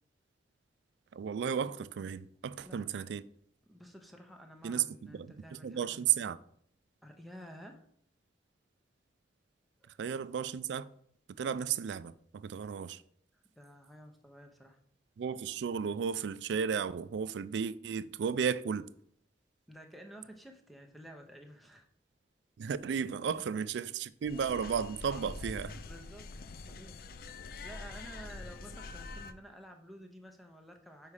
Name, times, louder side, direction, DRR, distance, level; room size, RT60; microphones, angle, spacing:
voice 1, 1.1-3.2 4.6-4.9 5.1-5.3 5.6-6.4 10.0-10.9 11.4-13.0 15.2-18.9 22.6-25.7, right 7 dB, 80° right, 0.3 m, -34 dB
voice 2, 2.6-3.0 3.7-6.1 7.0-7.8 9.8-9.9 13.3-14.8 19.7-21.9 23.3-23.5 25.1-25.4 25.8-27.0 27.6-31.1, equal, ahead, 0.7 m, -52 dB
sound 1, 24.2-29.3, left 3 dB, 50° left, 0.4 m, -45 dB
5.5 x 4.8 x 4.8 m
head